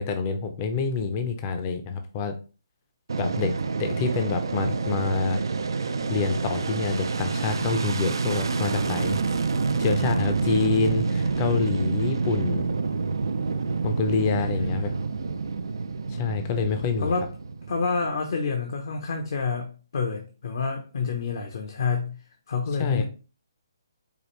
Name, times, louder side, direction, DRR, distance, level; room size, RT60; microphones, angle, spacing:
voice 1, 0.0-2.3 3.2-3.5 3.8-5.4 6.1-9.2 9.8-12.6 13.8-14.9 16.2-17.1 22.8-23.0, left 5 dB, 30° left, 0.5 m, -27 dB
Fixed-wing aircraft airplane, 3.1-18.3, right 4 dB, 80° right, 0.4 m, -28 dB
voice 2, 17.7-22.2 22.5-23.0, left 5 dB, 60° left, 0.7 m, -28 dB
4.8 x 2.5 x 3.1 m
hypercardioid pair, 155°, 2 cm